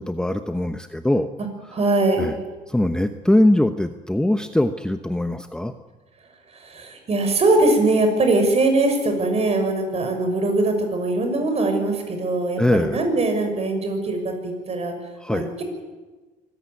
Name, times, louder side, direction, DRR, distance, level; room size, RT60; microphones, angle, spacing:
voice 1, 0.1-1.3 2.1-2.3 2.7-5.7 12.6-13.0 15.2-15.5, left 1 dB, 5° left, 8 dB, 1.0 m, -21 dB
voice 2, 1.7-2.3 6.5-14.9 15.3-15.6, right 2 dB, 40° right, 5 dB, 6.4 m, -21 dB
25.0 x 16.0 x 9.7 m, 1.3 s
cardioid pair, 110°, 17 cm